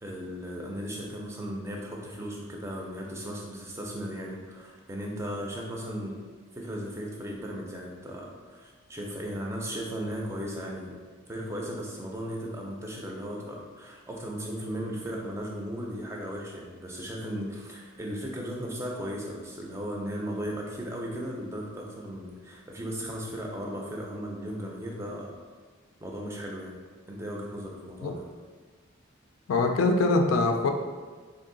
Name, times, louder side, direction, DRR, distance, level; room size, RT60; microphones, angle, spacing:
voice 1, 0.0-6.2 6.5-11.0 11.3-25.4 26.0-26.8 27.1-28.2, equal, 15° right, -1 dB, 0.4 m, -36 dB
voice 2, 29.5-30.7, left 3 dB, 85° left, 4 dB, 0.4 m, -23 dB
3.7 x 2.6 x 3.8 m, 1.5 s
head